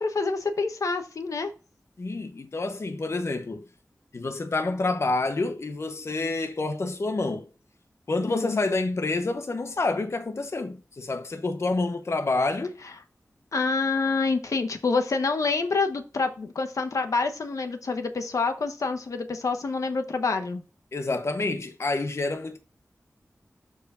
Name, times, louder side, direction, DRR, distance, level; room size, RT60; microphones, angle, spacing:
voice 1, 0.0-1.5 8.3-8.6 13.5-20.6, left 4 dB, 90° left, 1.1 m, -27 dB
voice 2, 2.0-3.7 4.1-7.5 8.1-12.7 20.9-22.6, left 3 dB, 55° left, 0.9 m, -28 dB
12.5 x 4.7 x 2.5 m
wide cardioid pair, 80°, 5 cm